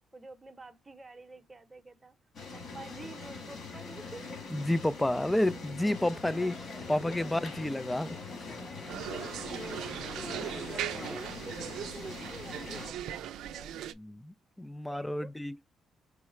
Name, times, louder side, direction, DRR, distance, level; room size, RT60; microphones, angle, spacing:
voice 1, 0.1-2.2 2.5-4.3 6.4-6.5 7.1-7.2 9.7-10.2 10.9-13.8 14.9-15.3, right 3 dB, 20° right, 0.8 m, -48 dB
sound 1, 2.3-12.9, left 4 dB, 60° left, 2.0 m, -43 dB
voice 2, 4.5-6.6 6.9-8.1 14.0-15.6, left 1 dB, 10° left, 0.3 m, -30 dB
sound 2, 5.8-11.2, left 3 dB, 35° left, 0.8 m, -46 dB
sound 3, 8.9-13.9, right 11 dB, 85° right, 0.4 m, -39 dB
4.7 x 2.0 x 4.4 m
cardioid pair, 90°, 0 cm